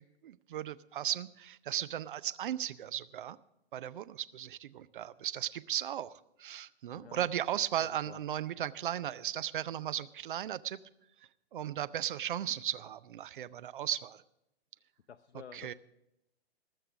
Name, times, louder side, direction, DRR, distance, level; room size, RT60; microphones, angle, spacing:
voice 1, 0.0-3.4 3.7-10.8 11.5-14.2 15.5-15.7, right 11 dB, 50° right, 15 dB, 0.6 m, -36 dB
voice 2, 6.9-7.3 7.8-8.2 15.1-15.7, left 7 dB, 80° left, 11 dB, 0.7 m, -50 dB
19.5 x 6.7 x 6.2 m, 0.87 s
figure-of-eight pair, 125°, 33 cm